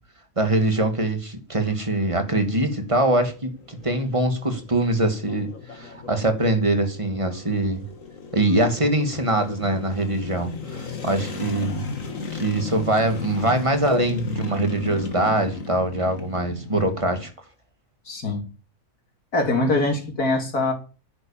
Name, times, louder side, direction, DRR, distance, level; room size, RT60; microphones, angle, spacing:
voice 1, 0.4-7.8 8.3-11.8 12.3-17.3, right 1 dB, 20° right, 2.3 m, -23 dB
sound 1, 2.1-17.3, left 3 dB, 60° left, 2.2 m, -35 dB
voice 2, 18.1-18.4 19.3-20.7, left 2 dB, 75° left, 3.6 m, -23 dB
10.0 x 9.6 x 7.4 m
omnidirectional pair, 1.6 m